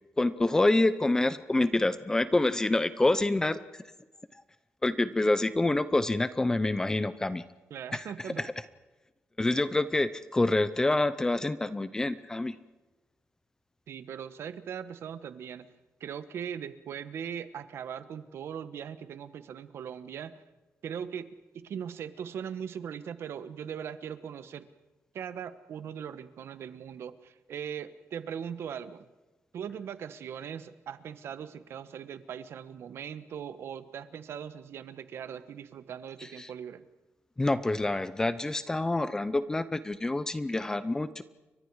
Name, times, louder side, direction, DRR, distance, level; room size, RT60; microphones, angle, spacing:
voice 1, 0.2-3.8 4.8-7.4 7.9-8.0 8.4-8.5 9.4-12.6 36.4-36.5 37.4-41.2, left 2 dB, 15° left, 14 dB, 0.7 m, -27 dB
voice 2, 7.7-8.5 13.9-15.7 16.0-20.4 20.8-21.3 21.5-24.7 25.1-29.1 29.5-36.8, right 8 dB, 70° right, 12 dB, 1.3 m, -40 dB
30.0 x 24.0 x 4.8 m, 1.1 s
wide cardioid pair, 155°, 4 cm